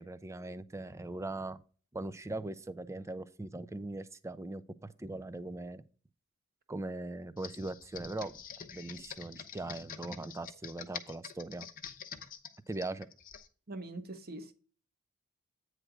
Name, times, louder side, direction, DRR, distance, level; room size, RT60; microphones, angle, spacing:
voice 1, 0.0-1.6 1.9-5.8 6.7-8.4 8.7-11.7 12.7-13.1, right 2 dB, 15° right, 0.4 m, -40 dB
Computer keyboard, 7.4-13.5, left 7 dB, 40° left, 0.8 m, -46 dB
voice 2, 13.7-14.5, right 2 dB, 45° right, 1.0 m, -43 dB
8.9 x 3.3 x 6.1 m
head